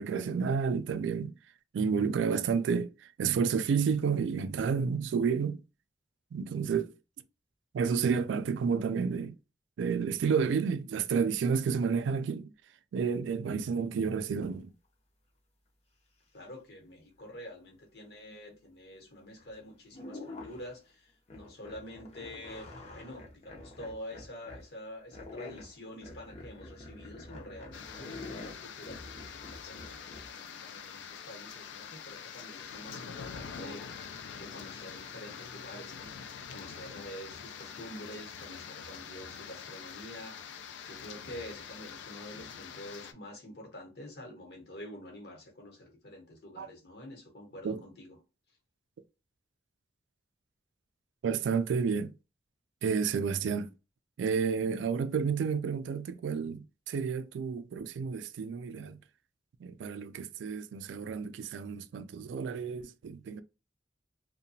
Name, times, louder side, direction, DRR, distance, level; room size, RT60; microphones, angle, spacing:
voice 1, 0.0-1.3 1.7-2.9 3.2-5.6 6.3-6.9 7.7-9.4 9.8-12.5 12.9-14.7 46.6-46.7 47.6-47.8 51.2-52.1 52.8-53.7 54.2-59.0 59.6-63.4, right 6 dB, 90° right, 0.3 m, -30 dB
voice 2, 16.3-48.2, left 1 dB, 60° left, 1.0 m, -47 dB
sound 1, 19.4-19.5 19.9-20.8 21.3-24.7 25.1-30.3 33.4-33.9, left 2 dB, 35° left, 0.6 m, -47 dB
sound 2, 27.7-43.1, left 7 dB, 85° left, 0.4 m, -45 dB
2.8 x 2.2 x 2.6 m
head